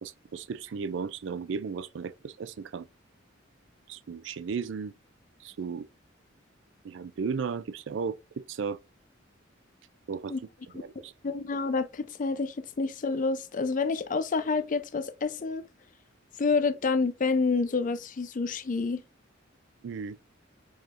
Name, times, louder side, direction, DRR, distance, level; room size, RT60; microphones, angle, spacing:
voice 1, 0.0-2.8 3.9-4.9 5.4-5.8 6.8-8.8 10.1-10.3 10.7-11.1 19.8-20.2, right 5 dB, 65° right, 0.4 m, -35 dB
voice 2, 11.2-15.6 16.4-19.0, left 4 dB, 40° left, 0.5 m, -28 dB
4.8 x 4.3 x 2.5 m
head